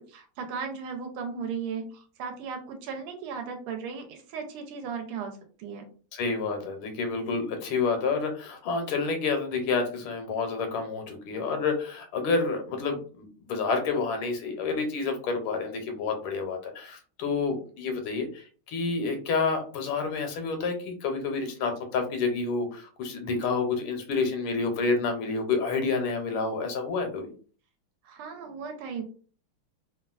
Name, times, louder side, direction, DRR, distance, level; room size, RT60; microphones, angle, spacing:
voice 1, 0.0-5.8 23.2-23.4 28.0-29.0, right 6 dB, 80° right, 4 dB, 1.5 m, -36 dB
voice 2, 6.1-27.3, left 4 dB, 75° left, 5 dB, 1.5 m, -29 dB
3.6 x 2.3 x 2.3 m, 0.40 s
omnidirectional pair, 2.4 m